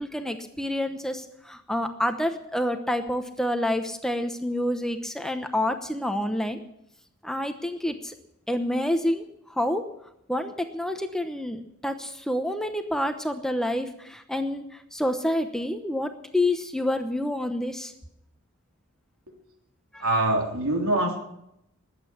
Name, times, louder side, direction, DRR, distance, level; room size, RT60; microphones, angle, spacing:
voice 1, 0.0-6.6 7.2-8.1 8.5-9.2 9.6-9.8 10.3-14.6 14.9-17.9 19.9-20.0, left 1 dB, ahead, 6 dB, 0.9 m, -28 dB
voice 2, 20.0-21.2, right 1 dB, 85° right, 1 dB, 3.6 m, -24 dB
20.0 x 8.6 x 7.1 m, 0.79 s
head